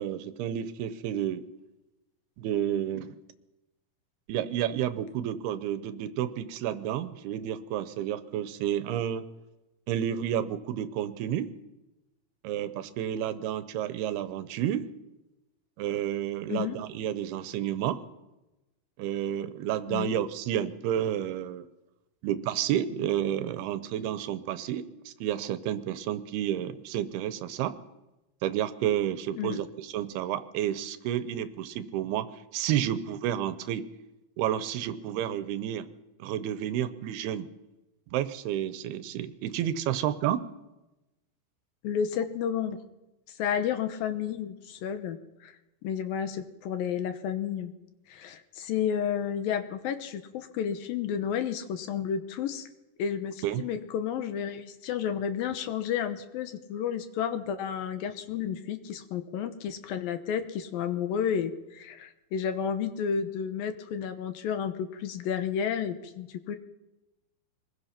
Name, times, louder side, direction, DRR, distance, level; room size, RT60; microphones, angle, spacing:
voice 1, 0.0-1.4 2.4-3.1 4.3-9.2 9.9-11.5 12.4-14.9 15.8-18.0 19.0-21.7 22.2-27.8 28.4-33.9 34.4-35.9 36.2-37.5 38.1-40.5 53.4-53.6, right 11 dB, 80° right, 13 dB, 2.9 m, -30 dB
voice 2, 41.8-42.8 43.4-45.5 45.8-47.7 48.1-52.7 53.0-66.6, left 8 dB, 70° left, 9 dB, 2.7 m, -31 dB
23.5 x 20.5 x 5.8 m, 1.0 s
omnidirectional pair, 4.6 m